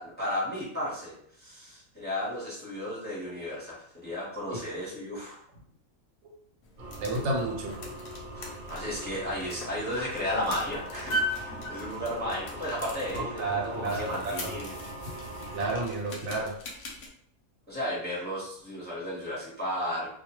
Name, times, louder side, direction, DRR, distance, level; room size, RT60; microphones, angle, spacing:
voice 1, 0.0-5.4 8.3-14.8 17.7-20.2, left 1 dB, 10° left, -7 dB, 0.7 m, -34 dB
sound 1, 6.6-17.1, equal, 60° left, 0.8 m, -39 dB
sound 2, 6.8-15.8, right 1 dB, 45° right, 0.7 m, -42 dB
voice 2, 7.0-7.8 11.6-11.7 13.1-14.6 15.5-16.5, right 2 dB, 80° right, 0 dB, 1.0 m, -31 dB
2.3 x 2.2 x 2.9 m, 0.68 s
omnidirectional pair, 1.4 m